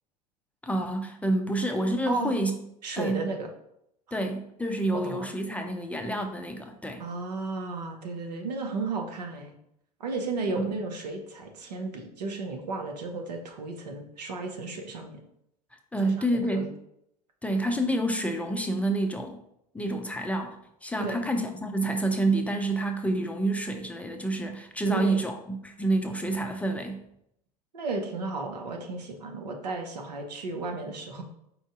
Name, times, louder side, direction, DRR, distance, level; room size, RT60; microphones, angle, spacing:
voice 1, 0.6-2.5 2.9-3.2 4.1-7.0 10.6-10.7 15.9-16.7 17.4-19.4 19.7-20.6 20.8-27.0, right 1 dB, 5° left, 4 dB, 0.5 m, -28 dB
voice 2, 2.8-3.5 4.1-4.2 4.9-5.3 7.0-9.5 10.0-15.2 16.0-16.7 21.0-21.2 24.9-25.2 27.7-31.2, right 3 dB, 80° right, 3 dB, 0.8 m, -34 dB
4.7 x 2.6 x 3.6 m, 0.76 s
hypercardioid pair, 80°, 21 cm